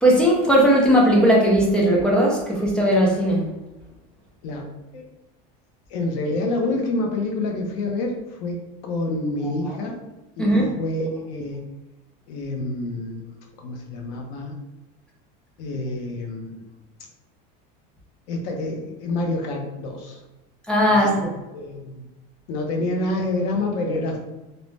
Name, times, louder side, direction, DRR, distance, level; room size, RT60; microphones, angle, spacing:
voice 1, 0.0-3.5 9.4-9.7 10.4-10.7 20.7-21.3, equal, 5° left, -3 dB, 0.3 m, -18 dB
voice 2, 5.9-8.6 8.8-10.0 10.4-11.6 12.3-13.3 13.6-14.6 15.6-16.6 18.3-20.2 20.9-21.0 21.5-22.0 22.5-24.2, left 2 dB, 75° left, 2 dB, 0.7 m, -27 dB
2.6 x 2.1 x 3.2 m, 1.0 s
cardioid pair, 175°, 21 cm